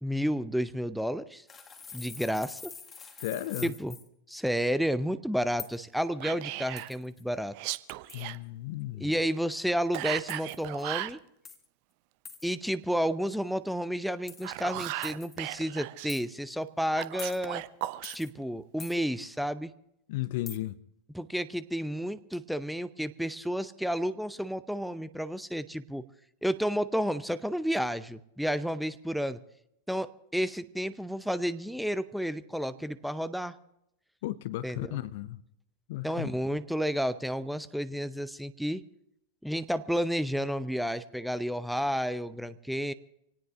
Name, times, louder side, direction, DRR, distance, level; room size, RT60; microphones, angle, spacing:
voice 1, 0.0-1.4 1.9-2.7 3.6-3.9 4.3-7.5 9.0-11.2 12.4-17.6 18.1-19.7 21.1-26.0 26.4-29.4 29.9-33.5 34.6-34.9 36.0-38.8 39.4-42.9, equal, ahead, 0.6 m, -31 dB
sound 1, 1.5-4.1 5.6-5.8 6.8-7.2 8.1-8.3 10.3-10.6 11.4-11.7 12.2-12.5 14.3-14.5 15.0-15.4 16.1-16.2 17.2-17.4 18.0-18.3 18.8-19.0 20.5-20.6, left 6 dB, 20° left, 1.8 m, -45 dB
voice 2, 3.2-3.7 8.1-9.1 20.1-20.8 34.2-35.4 35.9-36.4, left 15 dB, 50° left, 0.7 m, -35 dB
Whispering, 6.2-6.9 7.5-8.4 9.9-11.2 14.2-16.1 16.9-18.2, right 16 dB, 45° right, 0.6 m, -36 dB
27.0 x 18.0 x 2.5 m
figure-of-eight pair, 90°, 0 cm